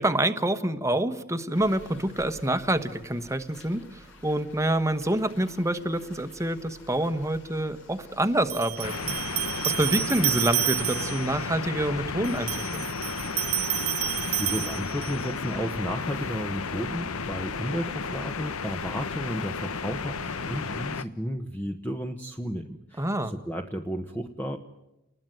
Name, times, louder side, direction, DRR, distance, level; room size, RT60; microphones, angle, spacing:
voice 1, 0.0-9.2 9.6-12.9 23.0-23.3, right 1 dB, 15° right, 11 dB, 1.2 m, -27 dB
sound 1, 1.5-20.9, left 1 dB, 60° left, 7.1 m, -51 dB
sound 2, 7.2-7.3 8.5-11.3 12.2-15.3, right 14 dB, 75° right, 1.1 m, -30 dB
sound 3, 8.8-21.0, left 5 dB, 85° left, 1.0 m, -33 dB
voice 2, 13.8-24.6, equal, 10° left, 4 dB, 1.1 m, -33 dB
29.0 x 20.5 x 9.2 m, 0.95 s
head